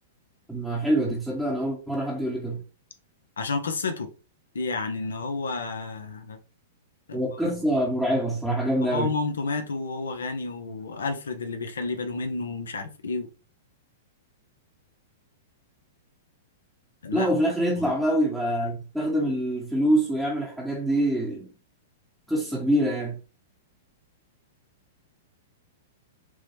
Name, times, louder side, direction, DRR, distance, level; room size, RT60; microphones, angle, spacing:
voice 1, 0.5-2.6 7.1-9.1 17.1-21.5 22.3-23.2, right 1 dB, ahead, 0.8 m, -25 dB
voice 2, 3.4-4.1 4.5-6.4 7.1-7.6 8.8-13.3 17.0-17.3 17.8-17.9, left 3 dB, 90° left, 0.6 m, -31 dB
4.7 x 2.1 x 2.9 m
hypercardioid pair, 120°, 0 cm